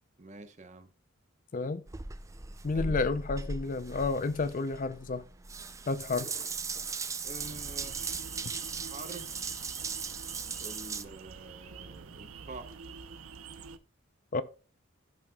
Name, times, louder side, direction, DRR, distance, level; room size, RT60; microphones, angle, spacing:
voice 1, 0.2-0.9 2.7-3.1 7.2-8.2 8.9-9.4 10.6-12.9, right 2 dB, 35° right, 1.0 m, -47 dB
voice 2, 1.5-1.8 2.6-5.2 5.9-6.3 14.3-14.4, left 3 dB, 40° left, 0.5 m, -31 dB
Water tap faucet / Bathtub (filling or washing) / Drip, 1.9-11.0, right 4 dB, 15° right, 0.4 m, -38 dB
sound 1, 7.4-13.8, right 5 dB, 85° right, 0.7 m, -47 dB
14.0 x 5.6 x 2.3 m
head